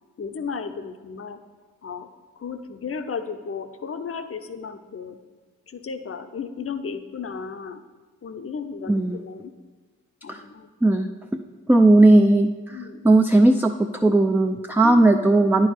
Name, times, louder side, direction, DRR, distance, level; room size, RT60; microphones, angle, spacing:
voice 1, 0.2-1.4 1.8-2.1 2.4-5.2 5.7-7.8 8.2-9.5 10.2-10.7 12.7-13.1 14.8-15.1, left 5 dB, 40° left, 9 dB, 0.7 m, -34 dB
voice 2, 8.9-9.2 10.3-10.4 10.8-11.4 11.7-12.8 13.0-15.7, right 2 dB, 5° right, 5 dB, 0.4 m, -17 dB
9.6 x 4.7 x 4.6 m, 1.4 s
supercardioid pair, 40°, 34 cm